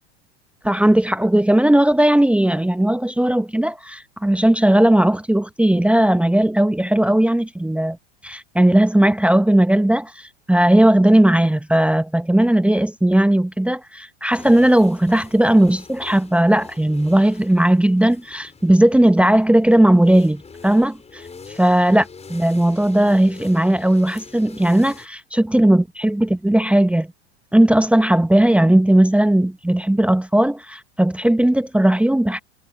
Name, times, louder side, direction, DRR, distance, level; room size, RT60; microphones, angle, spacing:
voice 1, 0.6-8.0 8.2-21.2 21.6-27.1 27.5-32.4, right 1 dB, 5° right, 1.1 m, -17 dB
sound 1, 14.3-25.1, left 5 dB, 20° left, 5.9 m, -44 dB
hypercardioid pair, 85°, 33 cm